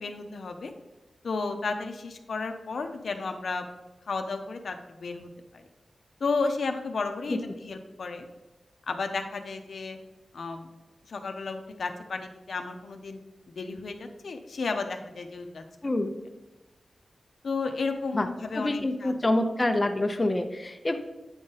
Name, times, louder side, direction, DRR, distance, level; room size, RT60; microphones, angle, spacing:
voice 1, 0.0-0.7 1.2-3.6 4.1-5.6 6.2-8.3 8.9-10.0 10.3-10.7 11.1-13.2 13.6-15.6 17.4-19.1, left 4 dB, 80° left, 5 dB, 0.6 m, -33 dB
voice 2, 15.8-16.1 18.1-18.3 18.5-21.0, left 1 dB, 25° left, 5 dB, 0.5 m, -26 dB
8.7 x 3.8 x 4.0 m, 1.1 s
wide cardioid pair, 120°, 0 cm